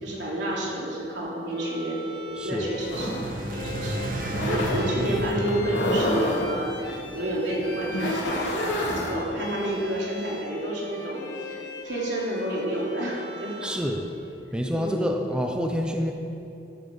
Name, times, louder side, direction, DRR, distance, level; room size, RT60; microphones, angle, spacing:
voice 1, 0.0-2.1 2.4-3.3 3.5-13.7 14.8-15.2, right 1 dB, 75° right, -4 dB, 3.5 m, -30 dB
Bowed string instrument, 1.5-14.0, left 2 dB, 65° left, 2.0 m, -41 dB
voice 2, 2.3-2.7 13.6-14.0 14.5-16.1, equal, 5° right, 2 dB, 0.8 m, -27 dB
sound 1, 2.6-7.7, right 1 dB, 50° right, 1.2 m, -33 dB
sound 2, 2.9-9.1, left 1 dB, 80° left, 2.9 m, -29 dB
14.5 x 11.0 x 5.6 m, 2.7 s
head